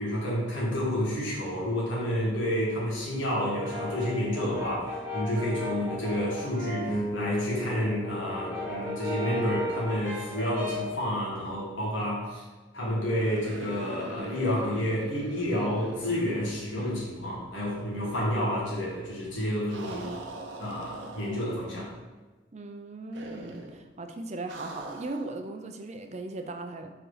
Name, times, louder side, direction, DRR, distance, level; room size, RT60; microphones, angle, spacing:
voice 1, 0.0-12.4 12.7-20.1 20.6-21.9, equal, 80° left, -4 dB, 1.8 m, -30 dB
Brass instrument, 3.3-7.0 7.4-11.0, left 1 dB, 10° right, 1.2 m, -35 dB
sound 1, 6.8-11.4, equal, 20° left, 0.6 m, -39 dB
sound 2, 13.1-17.3 17.6-17.7 19.7-21.7 23.1-23.8 24.5-25.3, right 2 dB, 65° right, 0.8 m, -42 dB
voice 2, 22.5-26.9, right 2 dB, 35° right, 6 dB, 0.5 m, -38 dB
4.6 x 4.3 x 4.9 m, 1.2 s
head